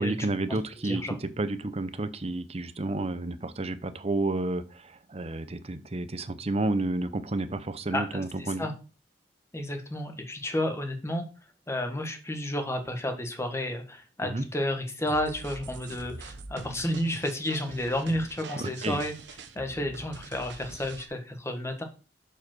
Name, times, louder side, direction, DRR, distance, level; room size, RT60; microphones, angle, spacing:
voice 1, 0.0-8.7 14.3-14.4 18.6-19.0, right 2 dB, 35° right, 12 dB, 0.7 m, -31 dB
voice 2, 0.8-1.1 7.9-8.7 9.5-11.3 11.7-19.1 19.5-21.8, left 1 dB, 15° left, 5 dB, 1.4 m, -31 dB
sound 1, 15.1-21.1, right 3 dB, 85° right, 1.0 m, -44 dB
7.0 x 5.1 x 6.1 m, 0.34 s
head